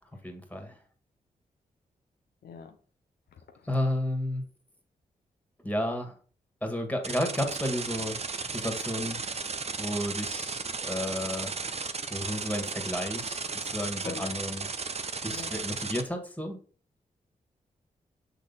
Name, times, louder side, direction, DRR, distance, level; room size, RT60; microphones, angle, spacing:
voice 1, 0.2-0.8 3.7-4.4 5.6-6.2 6.6-8.2 8.5-9.2 9.8-11.5 12.1-14.7 15.2-16.6, left 1 dB, 10° left, 2.1 m, -32 dB
voice 2, 2.4-2.8 3.6-3.8 14.0-14.4 15.3-15.6, left 6 dB, 80° left, 0.6 m, -42 dB
sound 1, 7.0-16.0, right 4 dB, 40° right, 0.7 m, -35 dB
6.2 x 3.9 x 4.1 m
supercardioid pair, 45°, 16 cm